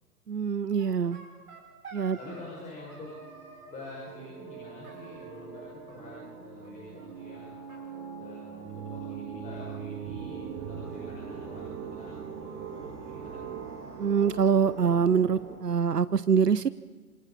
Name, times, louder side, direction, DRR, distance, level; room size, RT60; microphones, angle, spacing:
voice 1, 0.3-1.2 1.9-2.2 14.0-16.7, right 6 dB, 85° right, 16 dB, 0.7 m, -24 dB
sound 1, 0.8-2.6 2.9-3.9 4.8-5.6 5.9-6.7 7.0-7.1 7.3-7.4 7.7-8.7, right 3 dB, 65° right, 6.4 m, -51 dB
voice 2, 2.2-3.1 3.7-7.6 8.2-13.6, left 2 dB, 15° left, -5 dB, 6.0 m, -47 dB
sound 2, 3.0-15.6, right 6 dB, 30° right, 7.1 m, -41 dB
27.0 x 26.5 x 4.2 m, 1.3 s
figure-of-eight pair, 115°, 47 cm